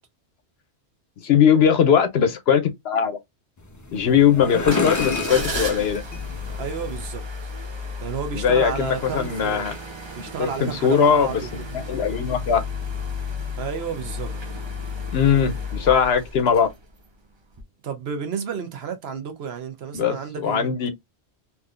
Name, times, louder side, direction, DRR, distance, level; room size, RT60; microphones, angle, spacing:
voice 1, 1.2-3.2 3.9-6.0 8.3-9.7 10.2-11.3 11.7-12.6 15.1-16.7 19.9-20.2 20.4-20.9, left 7 dB, 65° left, 0.9 m, -20 dB
sound 1, 3.6-7.2, left 3 dB, 30° left, 0.3 m, -30 dB
sound 2, 4.6-17.1 17.5-17.6, left 3 dB, 30° right, 0.5 m, -33 dB
voice 2, 6.5-7.2 8.0-9.7 10.1-11.7 13.6-14.3 17.8-20.9, right 6 dB, 65° right, 1.0 m, -31 dB
3.5 x 2.7 x 2.4 m
omnidirectional pair, 1.2 m